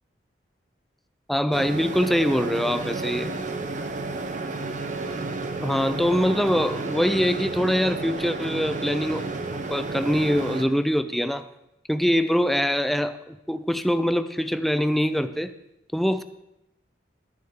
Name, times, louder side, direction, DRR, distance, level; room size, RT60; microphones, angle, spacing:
voice 1, 1.3-3.3 5.6-9.2 9.5-11.4 11.9-15.5 15.9-16.2, equal, ahead, 11 dB, 0.4 m, -23 dB
sound 1, 1.5-10.6, right 3 dB, 45° right, 0.8 m, -31 dB
13.5 x 9.9 x 3.7 m, 0.88 s
head